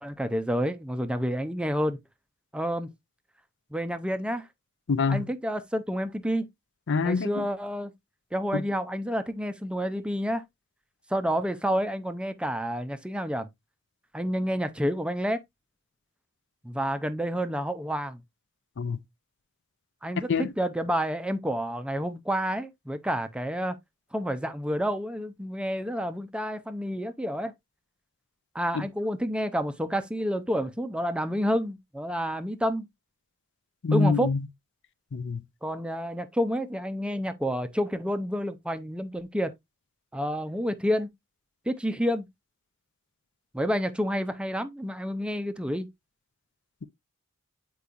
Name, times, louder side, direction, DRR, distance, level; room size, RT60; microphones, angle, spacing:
voice 1, 0.0-2.0 2.5-2.9 3.7-4.5 5.1-6.5 7.0-7.9 8.3-10.4 11.1-13.5 14.1-15.4 16.6-18.2 20.0-23.8 24.1-27.5 28.5-32.9 33.9-34.3 35.6-39.5 40.1-41.1 41.7-42.3 43.5-45.9, equal, 5° right, 0.5 m, -29 dB
voice 2, 4.9-5.3 6.9-7.5 8.5-8.6 18.8-19.0 20.2-20.5 28.7-28.9 33.8-34.5 35.1-35.4, left 4 dB, 55° left, 0.5 m, -26 dB
8.4 x 4.6 x 2.5 m
head